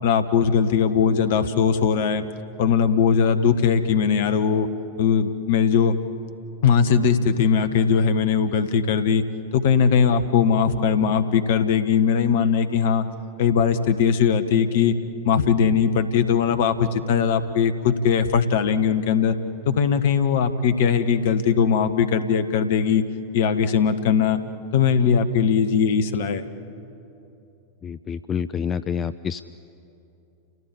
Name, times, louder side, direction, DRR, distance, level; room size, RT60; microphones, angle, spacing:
voice 1, 0.0-2.2 2.6-4.7 5.0-5.9 6.6-9.2 9.5-13.0 13.4-15.0 15.2-19.4 19.6-23.0 23.3-24.4 24.7-26.4, left 7 dB, 55° left, 10 dB, 1.3 m, -20 dB
voice 2, 27.8-29.4, left 7 dB, 25° left, 13 dB, 0.5 m, -28 dB
29.5 x 17.0 x 8.6 m, 2.8 s
figure-of-eight pair, 90°, 0 cm